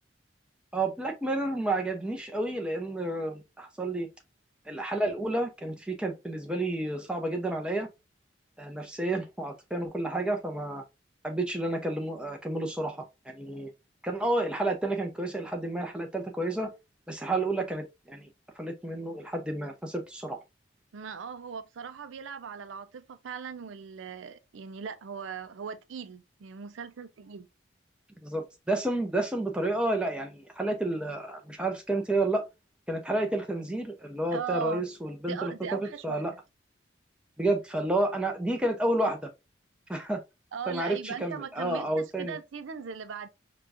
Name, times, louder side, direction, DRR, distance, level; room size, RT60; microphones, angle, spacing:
voice 1, 0.7-4.1 4.7-7.9 8.6-10.8 11.2-13.7 14.0-16.7 17.1-18.3 18.6-20.4 28.2-32.5 32.9-36.3 37.4-39.3 39.9-40.2 40.7-42.4, right 2 dB, 5° right, 0.6 m, -30 dB
voice 2, 20.9-27.5 34.3-34.9 35.3-36.4 40.5-43.3, right 6 dB, 80° right, 0.4 m, -38 dB
5.0 x 2.3 x 2.5 m
head